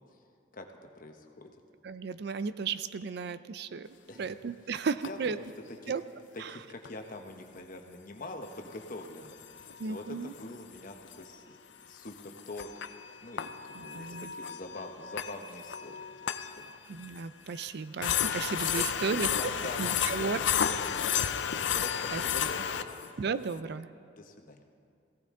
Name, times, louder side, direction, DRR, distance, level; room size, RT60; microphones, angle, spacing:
voice 1, 0.9-1.5 4.1-4.3 4.7-5.9 6.3-12.8 13.2-16.8 18.8-21.2 21.7-23.0 24.2-24.6, left 2 dB, 45° left, 4 dB, 1.0 m, -44 dB
voice 2, 1.8-3.9 4.2-5.4 5.9-6.0 6.4-6.5 9.8-10.3 13.8-14.3 16.9-19.3 19.8-20.4 22.1-22.2 23.2-23.9, right 5 dB, 60° right, 14 dB, 0.4 m, -34 dB
sound 1, 4.2-4.3 5.0-5.1 6.9-7.0 8.8-10.0 10.4-10.5 10.8-10.9 11.1-11.2 12.1-17.2 17.6-17.7 18.0-23.1, left 8 dB, 70° left, 0.5 m, -32 dB
18.0 x 16.0 x 3.7 m, 2.4 s
head